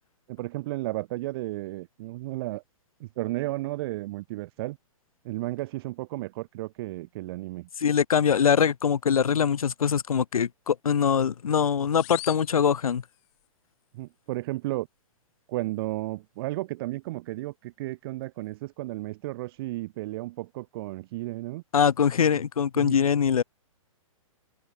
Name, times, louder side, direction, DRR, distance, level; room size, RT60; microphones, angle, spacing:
voice 1, 0.3-2.6 3.0-4.8 5.2-7.7 13.9-14.9 15.5-21.6 22.2-22.3 22.8-23.0, right 19 dB, 45° right, 7.3 m, -33 dB
voice 2, 7.8-13.0 21.7-23.4, left 7 dB, 85° left, 2.2 m, -23 dB
sound 1, 11.9-13.5, left 40 dB or more, 35° left, 6.8 m, -43 dB
hypercardioid pair, 145°, 18 cm